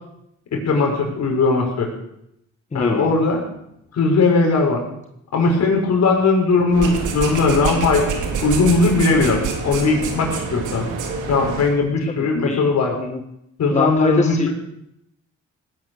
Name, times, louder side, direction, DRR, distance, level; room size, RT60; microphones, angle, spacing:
voice 1, 0.5-1.9 2.7-3.4 3.9-4.8 5.3-8.1 8.4-10.9 11.3-13.0 13.6-14.5, left 3 dB, 60° left, 1 dB, 5.7 m, -18 dB
voice 2, 2.7-3.2 12.2-12.6 12.9-13.2 13.7-14.5, left 4 dB, 25° left, 5 dB, 1.4 m, -24 dB
sound 1, 6.7-11.7, right 5 dB, 85° right, 3.4 m, -26 dB
19.0 x 10.5 x 7.0 m, 0.78 s
cardioid pair, 90°, 30 cm